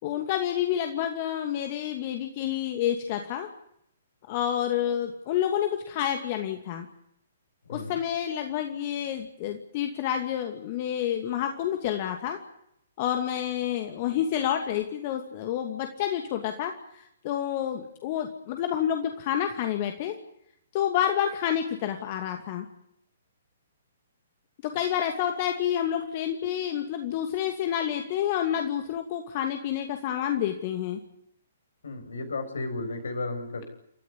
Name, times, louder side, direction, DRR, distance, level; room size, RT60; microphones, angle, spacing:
voice 1, 0.0-3.5 4.3-6.9 7.7-12.4 13.0-20.2 20.7-22.7 24.6-31.0, left 10 dB, 35° left, 4 dB, 2.5 m, -29 dB
voice 2, 31.8-33.7, left 3 dB, 65° left, 6 dB, 6.9 m, -33 dB
29.5 x 14.0 x 9.7 m, 0.72 s
figure-of-eight pair, 125°, 0 cm